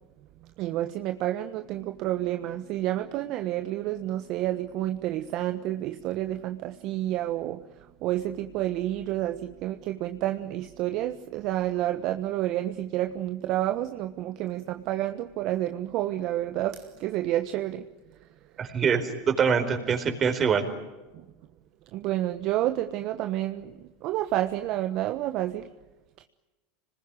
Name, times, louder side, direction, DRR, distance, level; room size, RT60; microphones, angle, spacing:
voice 1, 0.6-7.7 8.0-17.9 21.1-21.2 21.9-25.7, right 14 dB, 55° right, 7 dB, 1.2 m, -29 dB
voice 2, 18.6-20.7, right 6 dB, 30° right, 6 dB, 4.6 m, -24 dB
26.5 x 20.5 x 9.9 m, 1.2 s
hypercardioid pair, 100°, 0 cm